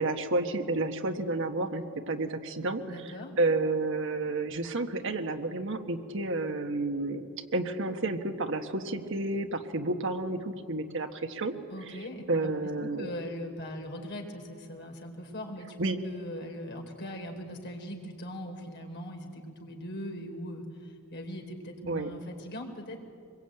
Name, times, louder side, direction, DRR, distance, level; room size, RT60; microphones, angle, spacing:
voice 1, 0.0-11.5 11.9-12.0 12.3-13.1 15.8-16.0 21.9-22.1, right 2 dB, 60° right, 6 dB, 1.5 m, -31 dB
voice 2, 2.9-3.3 11.7-12.5 12.8-23.0, equal, 50° left, 2 dB, 4.1 m, -40 dB
25.0 x 22.0 x 9.0 m, 2.4 s
head